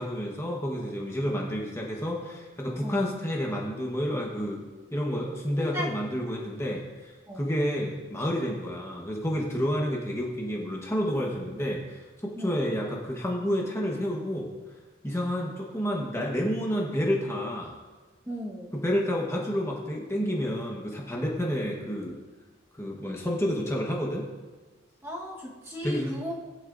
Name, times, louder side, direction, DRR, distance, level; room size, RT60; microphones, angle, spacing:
voice 1, 0.0-4.6 4.9-14.5 15.0-17.8 18.7-22.2 22.8-24.2 25.8-26.3, equal, 15° left, -2 dB, 1.2 m, -30 dB
voice 2, 5.6-5.9 7.3-7.4 12.4-12.6 18.3-18.8 25.0-26.3, left 1 dB, 15° right, -3 dB, 1.3 m, -35 dB
19.5 x 8.9 x 2.6 m, 1.3 s
head